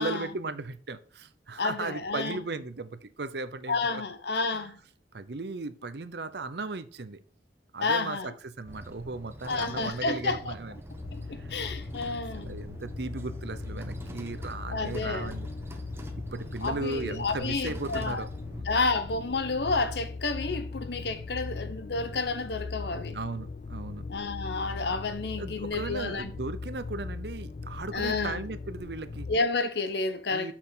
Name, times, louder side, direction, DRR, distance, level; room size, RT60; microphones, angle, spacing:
voice 1, 0.0-4.0 4.5-4.7 5.1-7.2 7.7-10.8 11.2-11.6 12.0-15.5 16.3-18.7 23.1-24.1 25.4-29.3 30.3-30.5, right 3 dB, 70° right, 0.7 m, -37 dB
voice 2, 1.6-2.5 3.7-4.8 7.8-8.3 9.4-10.5 11.1-12.6 14.7-15.3 16.6-18.2 18.7-23.2 24.1-26.3 27.9-28.4 29.3-30.5, left 3 dB, 70° left, 0.9 m, -30 dB
sound 1, 8.7-18.6, right 1 dB, 15° right, 0.9 m, -44 dB
sound 2, 10.9-29.4, left 3 dB, 40° left, 0.4 m, -39 dB
6.5 x 5.9 x 4.1 m
head